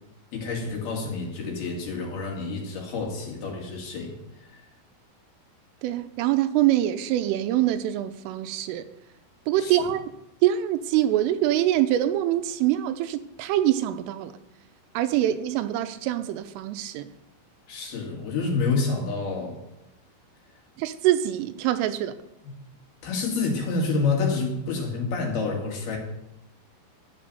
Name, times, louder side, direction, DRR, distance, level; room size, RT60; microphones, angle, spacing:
voice 1, 0.3-4.7 9.6-9.9 17.7-19.6 23.0-26.0, left 4 dB, 55° left, 3.8 m, -28 dB
voice 2, 5.8-8.9 9.5-10.0 10.4-14.3 14.9-17.1 20.8-22.2, right 13 dB, 80° right, 3.2 m, -24 dB
13.0 x 10.5 x 6.9 m
omnidirectional pair, 5.9 m